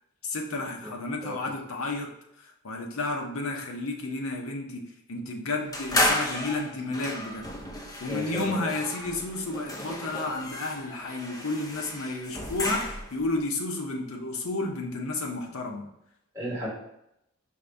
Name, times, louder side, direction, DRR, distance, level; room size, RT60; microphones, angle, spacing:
voice 1, 0.2-2.1 2.4-4.8 5.1-7.6 8.0-15.9, left 2 dB, 80° left, 1 dB, 0.7 m, -32 dB
sound 1, 5.7-13.2, left 1 dB, 15° left, 0.5 m, -32 dB
voice 2, 8.1-8.7 16.3-16.7, equal, 15° right, -8 dB, 1.3 m, -34 dB
5.2 x 2.5 x 3.3 m, 0.80 s
head